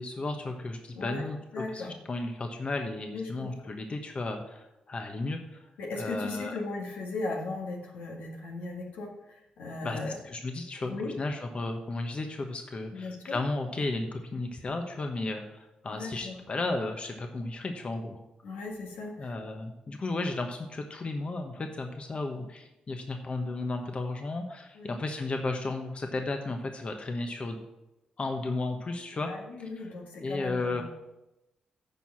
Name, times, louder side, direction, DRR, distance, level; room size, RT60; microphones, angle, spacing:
voice 1, 0.0-1.4 1.7-5.6 5.9-6.5 9.8-18.2 19.2-27.6 28.2-29.3 30.2-30.8, left 2 dB, 45° left, 4 dB, 1.1 m, -34 dB
voice 2, 0.9-1.2 1.5-1.9 3.1-3.7 5.8-10.1 10.9-11.2 12.9-13.4 15.9-16.4 18.4-19.3 24.7-25.0 29.3-30.8, left 3 dB, 85° left, -1 dB, 1.8 m, -37 dB
9.9 x 4.8 x 6.1 m, 0.93 s
supercardioid pair, 55°, 3 cm